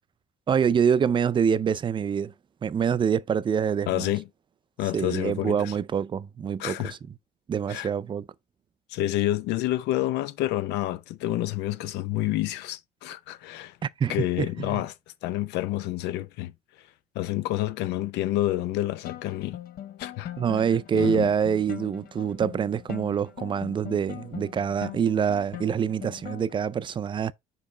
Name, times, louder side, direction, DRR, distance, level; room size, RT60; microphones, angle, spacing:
voice 1, 0.5-2.3 2.6-4.1 4.9-7.0 7.5-8.2 13.8-14.8 20.4-27.3, right 7 dB, 30° right, 0.4 m, -25 dB
voice 2, 3.9-4.3 4.8-5.7 6.6-6.9 7.7-7.9 8.9-13.8 14.1-14.9 15.2-16.9 17.1-19.6 20.0-20.3 20.9-21.3, left 15 dB, 90° left, 0.6 m, -29 dB
sound 1, 19.1-26.7, left 11 dB, 60° left, 0.9 m, -41 dB
5.3 x 4.7 x 4.2 m
cardioid pair, 110°, 17 cm